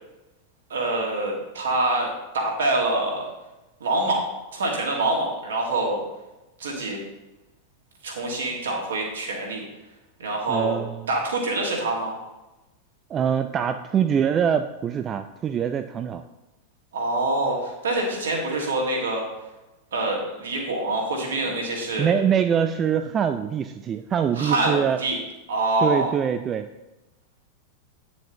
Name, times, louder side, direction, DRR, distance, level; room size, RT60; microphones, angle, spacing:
voice 1, 0.7-3.3 3.8-6.0 6.6-7.0 8.0-9.6 10.2-10.8 11.1-12.2 16.9-19.3 19.9-22.1 24.4-25.2 25.5-26.1, right 2 dB, 65° right, -1 dB, 1.9 m, -25 dB
voice 2, 10.5-11.1 13.1-16.2 22.0-25.0 25.8-26.7, right 8 dB, 25° right, 8 dB, 0.3 m, -24 dB
8.9 x 7.0 x 3.0 m, 1.0 s
figure-of-eight pair, 90°, 0 cm